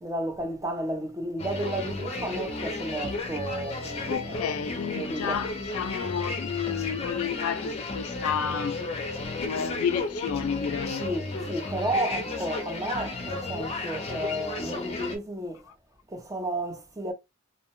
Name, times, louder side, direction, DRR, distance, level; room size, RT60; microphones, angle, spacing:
voice 1, 0.0-4.4 4.9-5.4 11.0-15.7 16.1-17.1, right 1 dB, 15° right, 0.5 m, -32 dB
sound 1, 1.4-15.2, left 3 dB, 30° left, 0.5 m, -33 dB
voice 2, 4.1-8.9 9.4-11.1, left 7 dB, 85° left, 0.3 m, -31 dB
2.7 x 2.1 x 3.0 m
head